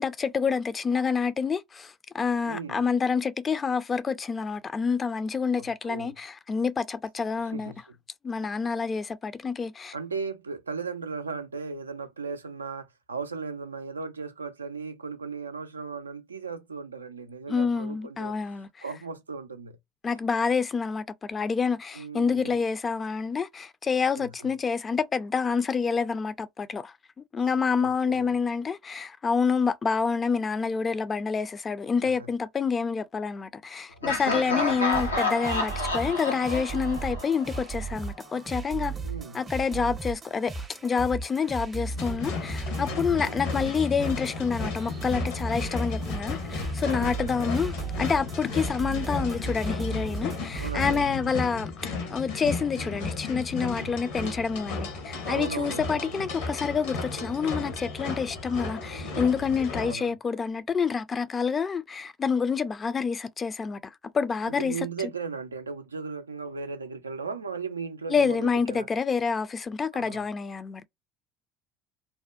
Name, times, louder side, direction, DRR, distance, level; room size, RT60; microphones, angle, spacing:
voice 1, 0.0-7.7 8.2-9.9 17.5-18.7 20.0-38.9 39.3-63.8 64.1-64.8 68.1-70.9, left 5 dB, 30° left, 0.4 m, -28 dB
voice 2, 2.5-2.8 5.6-6.1 7.5-7.9 8.4-8.5 9.9-19.8 21.9-22.5 24.2-24.5 27.8-28.3 32.0-32.3 39.0-39.4 43.1-43.4 46.8-47.6 50.5-51.3 55.2-56.3 59.1-59.4 59.8-60.1 64.5-68.9 69.9-70.2, right 4 dB, 85° right, 0.3 m, -37 dB
Laughter, 34.0-37.9, left 3 dB, 90° left, 0.5 m, -29 dB
sound 1, 34.9-51.1, right 2 dB, 30° right, 0.5 m, -36 dB
sound 2, 42.0-59.9, left 3 dB, 70° left, 0.8 m, -34 dB
2.6 x 2.1 x 2.3 m
figure-of-eight pair, 60°, 0 cm